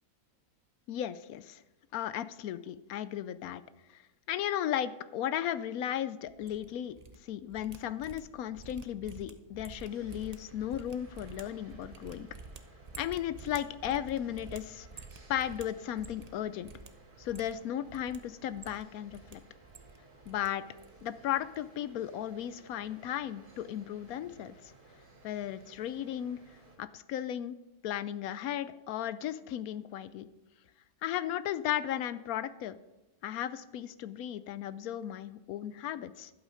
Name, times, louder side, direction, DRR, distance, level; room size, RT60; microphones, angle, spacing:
voice 1, 0.9-1.6 1.9-3.6 3.9-4.0 4.3-6.9 7.2-12.3 13.0-15.0 15.3-16.7 17.2-19.4 20.3-20.6 21.0-24.7 25.2-27.5 27.8-30.3 31.0-32.8 33.2-36.3, left 11 dB, 75° left, 14 dB, 1.0 m, -35 dB
sound 1, 6.3-7.2 7.4-16.4 16.6-16.9 17.2-18.2 18.5-19.3 19.6-20.5 20.8-21.1 21.3-21.6, right 4 dB, 40° right, 0.6 m, -50 dB
sound 2, 9.7-26.8, right 2 dB, 85° right, 3.0 m, -58 dB
11.5 x 8.2 x 5.0 m, 1.0 s
omnidirectional pair, 1.6 m